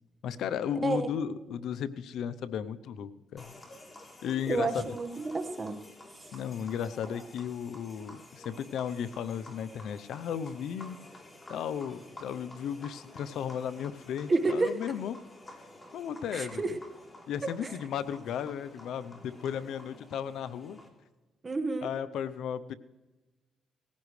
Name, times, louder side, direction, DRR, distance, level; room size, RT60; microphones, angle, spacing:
voice 1, 0.2-3.6 4.2-4.8 6.3-11.0 11.5-15.2 15.9-16.8 17.3-20.8 21.8-22.7, left 8 dB, 75° left, 14 dB, 0.7 m, -35 dB
sound 1, 3.4-20.9, left 1 dB, 25° left, 3.4 m, -51 dB
voice 2, 4.5-5.7 14.3-14.8 16.3-16.8 17.6-17.7 21.4-21.9, right 3 dB, 30° right, 8 dB, 1.5 m, -29 dB
19.5 x 16.0 x 3.3 m, 1.1 s
cardioid pair, 90°, 0 cm